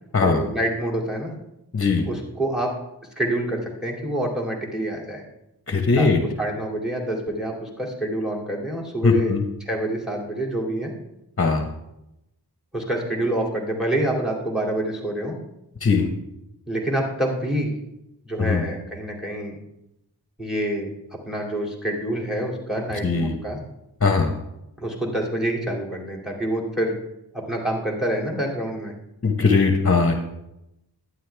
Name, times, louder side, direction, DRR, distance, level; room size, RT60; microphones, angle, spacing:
voice 1, 0.2-1.3 2.0-2.7 3.2-5.2 5.9-6.1 6.4-9.3 9.6-10.9 12.7-15.4 16.7-17.7 18.3-19.6 20.4-23.6 24.8-26.9 27.3-28.9, right 1 dB, ahead, 0 dB, 2.6 m, -27 dB
voice 2, 1.7-2.0 5.7-6.2 9.0-9.4 11.4-11.6 15.8-16.1 18.4-18.6 23.0-23.3 24.0-24.3 29.2-30.1, left 4 dB, 35° left, 4 dB, 1.0 m, -19 dB
11.5 x 9.7 x 3.4 m, 0.87 s
wide cardioid pair, 50°, 40 cm